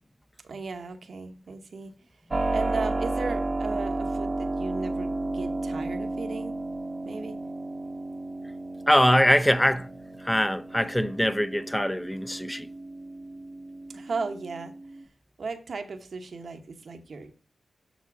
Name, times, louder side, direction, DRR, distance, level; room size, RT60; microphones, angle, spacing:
voice 1, 0.4-1.9 2.5-6.5 7.0-7.4 13.9-14.7 15.4-17.3, right 4 dB, 65° right, 1.0 m, -36 dB
Keyboard (musical), 2.3-15.0, right 2 dB, 40° right, 0.9 m, -33 dB
voice 2, 8.9-9.9 10.2-12.7, equal, 10° left, 0.6 m, -23 dB
7.2 x 6.0 x 4.7 m
cardioid pair, 45°, 0 cm